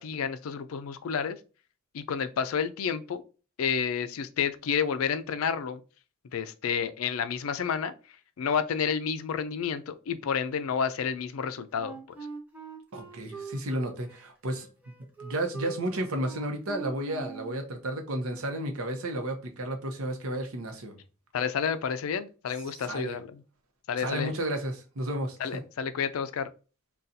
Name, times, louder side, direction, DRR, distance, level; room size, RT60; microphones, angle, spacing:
voice 1, 0.0-1.4 1.9-3.2 3.6-5.8 6.3-7.9 8.4-11.9 21.3-23.4 23.9-24.3 25.4-26.5, left 7 dB, 80° left, 0.4 m, -30 dB
Wind instrument woodwind instrument, 11.7-17.6, right 5 dB, 10° right, 0.7 m, -43 dB
voice 2, 12.9-14.7 15.2-21.0 22.7-23.2 24.0-25.6, right 1 dB, 85° right, 0.8 m, -32 dB
4.0 x 2.3 x 2.6 m
head